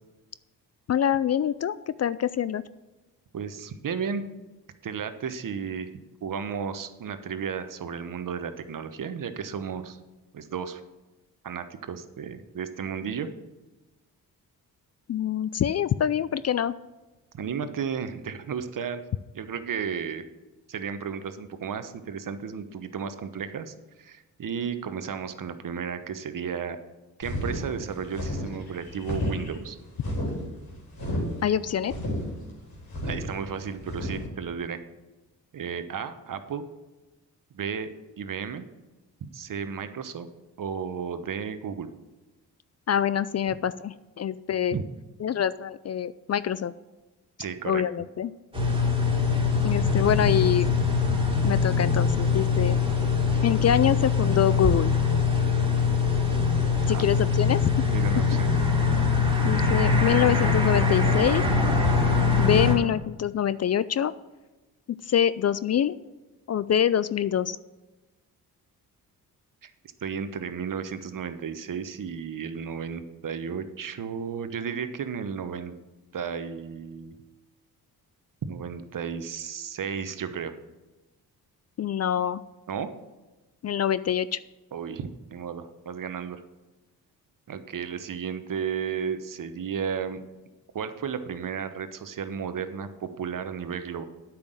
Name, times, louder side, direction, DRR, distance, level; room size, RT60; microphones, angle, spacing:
voice 1, 0.9-2.6 15.1-16.7 31.4-31.9 42.9-44.8 45.2-46.7 47.6-48.3 49.6-50.7 51.4-52.8 53.4-54.9 56.9-57.6 59.4-61.4 62.4-64.1 64.9-65.9 66.5-67.6 81.8-82.4 83.6-84.4, left 9 dB, 40° left, 17 dB, 0.4 m, -25 dB
voice 2, 3.3-4.2 4.8-5.9 6.2-10.0 10.3-10.8 11.4-13.3 17.3-19.0 19.3-20.2 20.7-26.8 27.2-29.8 33.0-34.8 35.5-36.6 37.5-37.9 38.2-38.6 39.2-40.3 40.6-41.9 44.7-44.8 47.4-47.8 56.9-57.1 57.9-58.6 69.6-69.7 70.0-75.7 76.1-77.1 78.4-80.6 82.7-82.9 84.7-86.4 87.5-90.2 90.7-94.0, right 7 dB, 50° right, 11 dB, 1.0 m, -33 dB
sound 1, 27.2-34.3, left 1 dB, 60° left, 3.9 m, -32 dB
sound 2, 48.5-62.7, left 4 dB, 15° right, 3.7 m, -23 dB
8.6 x 6.1 x 7.7 m, 1.1 s
supercardioid pair, 50°, 40 cm